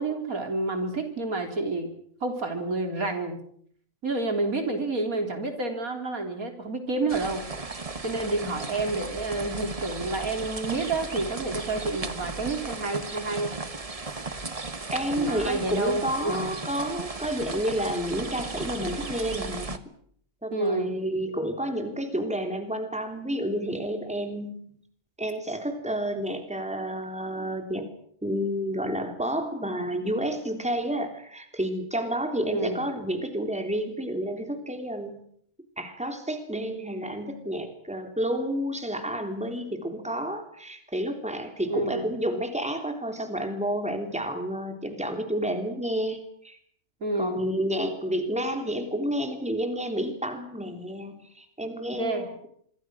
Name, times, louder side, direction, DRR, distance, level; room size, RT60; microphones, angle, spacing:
voice 1, 0.0-1.9 2.2-3.4 4.0-7.4 8.0-13.5 14.1-14.2 15.2-16.5 20.5-20.9 32.5-32.8 41.7-42.1 47.0-47.4 51.9-52.3, right 2 dB, 90° right, 5 dB, 4.3 m, -29 dB
sound 1, 7.1-19.8, right 3 dB, 25° right, 1.3 m, -36 dB
voice 2, 14.9-19.9 20.4-24.8 25.2-27.9 28.2-35.3 35.8-46.6 47.2-52.5, equal, 5° right, 5 dB, 3.3 m, -30 dB
26.0 x 24.0 x 6.3 m, 0.65 s
omnidirectional pair, 1.5 m